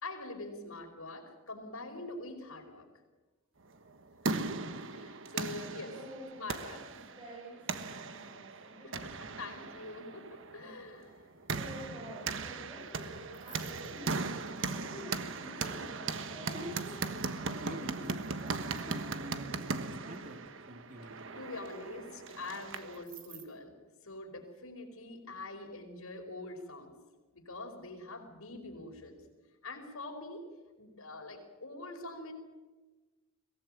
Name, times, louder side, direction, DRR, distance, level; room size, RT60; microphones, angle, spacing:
voice 1, 0.0-2.8 4.2-4.4 4.9-5.9 6.4-6.8 8.8-9.1 9.4-11.2 21.4-23.7 24.0-26.9 27.3-29.2 29.6-30.4 30.8-32.3, left 2 dB, 85° left, 3 dB, 4.9 m, -44 dB
sound 1, 3.8-23.0, right 4 dB, 60° right, 1.3 m, -39 dB
voice 2, 5.9-9.0 10.5-11.0 11.5-20.5, equal, 25° right, -5 dB, 8.0 m, -49 dB
Earring Anklet Payal Jhumka Jewellery, 13.3-14.6 15.5-15.7 16.5-21.2 22.7-23.4, right 1 dB, 40° right, 2.5 m, -47 dB
23.0 x 17.5 x 9.1 m, 1.2 s
head